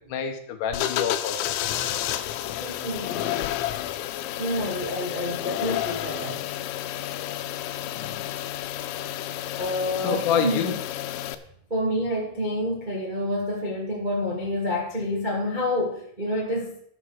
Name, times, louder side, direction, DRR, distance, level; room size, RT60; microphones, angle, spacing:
voice 1, 0.1-1.7 7.9-8.3 10.0-10.8, left 7 dB, 65° left, 4 dB, 2.2 m, -28 dB
sound 1, 0.7-11.4, left 13 dB, 85° left, 3.1 m, -30 dB
voice 2, 2.5-3.5 4.4-6.4 9.6-10.6 11.7-16.8, left 1 dB, 55° right, -3 dB, 0.5 m, -28 dB
11.5 x 7.2 x 6.3 m, 0.66 s
omnidirectional pair, 5.3 m